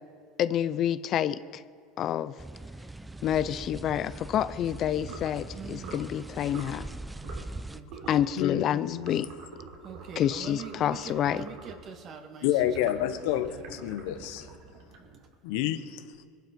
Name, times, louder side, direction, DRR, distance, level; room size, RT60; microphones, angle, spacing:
voice 1, 0.4-1.4 2.0-2.3 3.2-6.9 8.1-9.3 10.2-11.4, left 10 dB, 45° left, 15 dB, 0.6 m, -28 dB
sound 1, 2.4-7.8, right 2 dB, 10° right, 0.6 m, -41 dB
sound 2, 5.0-5.3 5.8-6.1 6.5-6.8 7.2-7.6 7.9-8.3 9.0-11.9 12.5-15.3, right 5 dB, 70° right, 3.3 m, -45 dB
voice 2, 5.5-6.2 7.7-8.4 9.8-12.5 13.0-14.6 15.1-15.2, right 6 dB, 45° right, 5 dB, 2.0 m, -45 dB
voice 3, 8.4-9.3 12.4-14.5 15.4-16.0, left 12 dB, 75° left, 10 dB, 1.1 m, -29 dB
21.5 x 11.5 x 5.3 m, 2.1 s
supercardioid pair, 100°, 0 cm